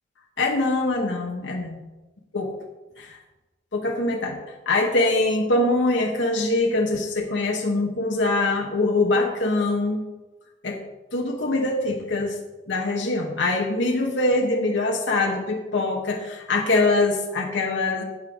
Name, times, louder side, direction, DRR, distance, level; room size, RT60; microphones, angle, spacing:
voice 1, 0.4-1.8 2.3-2.5 3.0-3.2 3.7-4.4 4.7-10.0 10.6-10.8 11.1-12.4 12.7-18.0, left 2 dB, 65° left, 1 dB, 1.1 m, -23 dB
12.0 x 7.8 x 3.6 m, 1.1 s
head